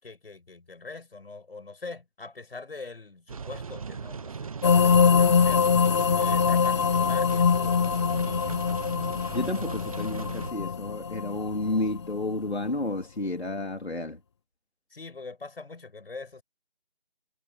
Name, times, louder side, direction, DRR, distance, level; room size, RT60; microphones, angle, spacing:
voice 1, 0.0-5.8 6.2-8.7 14.9-16.4, left 3 dB, 65° left, 7.2 m, -43 dB
sound 1, 3.3-10.5, right 5 dB, 35° right, 0.9 m, -38 dB
sound 2, 4.6-12.4, left 6 dB, 25° left, 1.0 m, -23 dB
voice 2, 9.3-14.2, left 2 dB, 90° left, 3.3 m, -31 dB
figure-of-eight pair, 155°, 31 cm